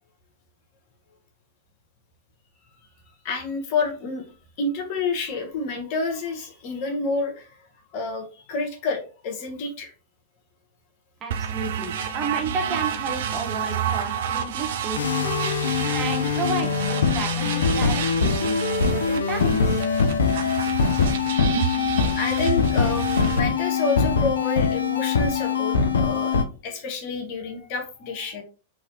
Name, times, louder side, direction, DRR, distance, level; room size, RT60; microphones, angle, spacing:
voice 1, 3.2-4.2 4.6-7.5 7.9-9.9 22.2-28.4, left 3 dB, 50° left, 3 dB, 0.9 m, -29 dB
voice 2, 11.2-15.0 15.9-19.8, right 4 dB, 30° right, 5 dB, 0.7 m, -32 dB
sound 1, 11.3-23.4, right 8 dB, 65° right, 0.4 m, -30 dB
sound 2, 15.0-26.4, left 5 dB, 75° left, 0.4 m, -23 dB
3.1 x 2.6 x 2.6 m, 0.36 s
hypercardioid pair, 100°, 0 cm